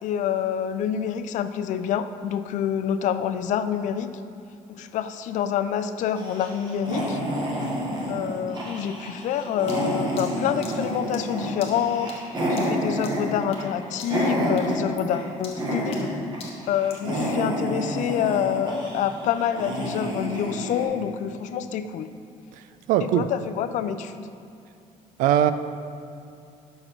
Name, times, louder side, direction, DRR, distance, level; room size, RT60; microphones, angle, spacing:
voice 1, 0.0-4.1 4.7-7.2 8.1-12.1 12.5-16.1 16.7-22.1 23.0-24.3, left 9 dB, 65° left, 11 dB, 0.4 m, -27 dB
sound 1, 6.2-15.3 15.6-16.4 16.7-20.9, equal, 35° right, 1.5 m, -29 dB
sound 2, 9.7-13.7 14.0-14.3 14.6-17.1, left 4 dB, 45° left, 1.3 m, -45 dB
voice 2, 22.9-23.3 25.2-25.5, right 11 dB, 80° right, 11 dB, 0.4 m, -19 dB
6.5 x 6.0 x 4.5 m, 2.5 s
cardioid pair, 120°, 14 cm